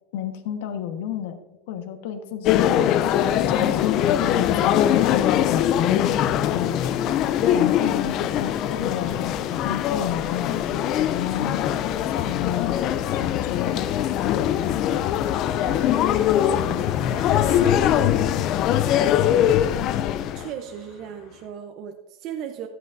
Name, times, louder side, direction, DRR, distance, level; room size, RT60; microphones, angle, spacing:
voice 1, 0.1-1.4 1.7-7.0 7.5-11.7 12.1-12.8 13.1-14.0 14.2-14.7 15.7-17.5 18.5-19.0, left 10 dB, 70° left, 7 dB, 1.3 m, -32 dB
sound 1, 2.4-20.5, left 11 dB, 35° left, 0.4 m, -22 dB
sound 2, 3.1-19.0, right 3 dB, 55° right, 1.4 m, -46 dB
Car passing by, 10.3-21.5, left 4 dB, 50° left, 3.4 m, -39 dB
voice 2, 20.3-22.7, right 9 dB, 40° right, 5 dB, 0.7 m, -36 dB
14.5 x 8.1 x 2.6 m, 0.99 s
supercardioid pair, 165°, 0 cm